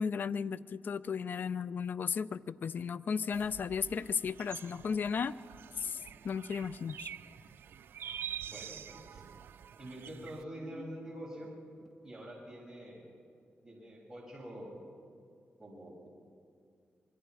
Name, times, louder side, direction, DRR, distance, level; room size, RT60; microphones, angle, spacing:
voice 1, 0.0-5.3 5.8-6.0 6.2-7.1, left 6 dB, 60° left, 16 dB, 0.5 m, -34 dB
sound 1, 2.7-2.8 3.2-4.4 5.0-8.5 8.8-9.5 10.1-12.1, equal, 10° left, 2.1 m, -57 dB
sound 2, 3.3-10.4, right 9 dB, 75° right, 0.4 m, -47 dB
voice 2, 8.4-9.2 9.8-11.5 12.0-13.1 13.6-14.9 15.6-16.1, right 1 dB, 10° right, -4 dB, 7.2 m, -46 dB
25.5 x 22.5 x 4.8 m, 2.2 s
cardioid pair, 100°, 4 cm